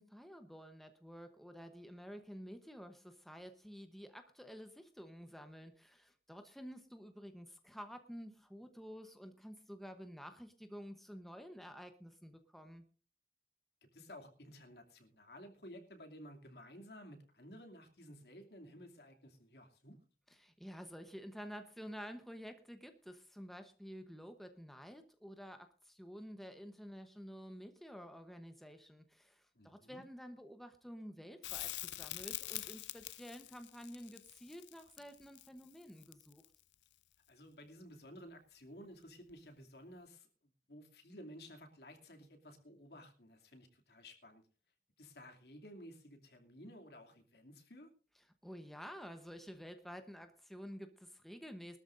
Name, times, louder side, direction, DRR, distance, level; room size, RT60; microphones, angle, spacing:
voice 1, 0.0-12.8 20.3-36.4 48.4-51.8, equal, ahead, 7 dB, 0.9 m, -51 dB
voice 2, 13.8-20.0 29.5-30.0 37.3-40.3 40.7-44.4 45.0-47.9, equal, 70° left, 4 dB, 2.7 m, -54 dB
Crackle, 31.4-36.6 39.3-39.4, left 16 dB, 90° left, 0.5 m, -45 dB
22.0 x 13.0 x 2.6 m, 0.38 s
head